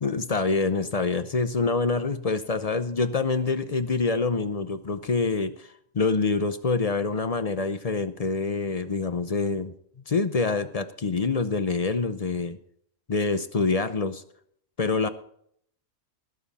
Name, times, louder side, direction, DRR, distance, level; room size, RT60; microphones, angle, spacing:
voice 1, 0.0-5.7 5.9-9.7 10.1-12.6 13.1-14.2 14.8-15.1, left 4 dB, 40° left, 11 dB, 0.6 m, -26 dB
20.5 x 7.3 x 4.1 m, 0.66 s
omnidirectional pair, 1.4 m